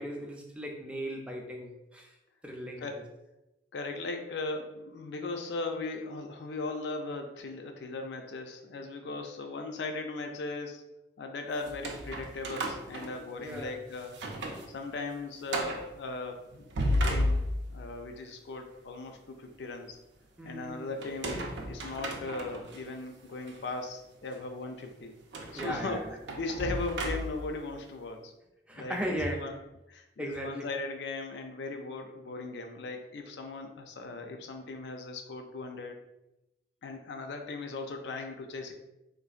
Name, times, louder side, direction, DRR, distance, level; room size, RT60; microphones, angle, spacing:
voice 1, 0.0-2.2 2.4-2.9 13.4-13.8 20.4-21.0 25.5-26.1 28.7-29.5 30.2-30.7, equal, 5° right, 1 dB, 0.4 m, -37 dB
voice 2, 3.7-10.8 11.2-14.1 14.7-16.7 17.1-20.0 20.4-21.4 21.7-25.1 25.5-26.0 26.3-28.3 28.7-29.5 29.9-36.0 36.8-38.7, left 3 dB, 70° left, 4 dB, 0.4 m, -38 dB
sound 1, 11.6-13.7 14.1-14.7 15.0-15.1 15.5-15.9 16.5-17.9 21.0-22.8 23.4-23.6 25.3-27.6, equal, 80° right, 0.5 m, -33 dB
3.8 x 2.4 x 2.4 m, 0.93 s
head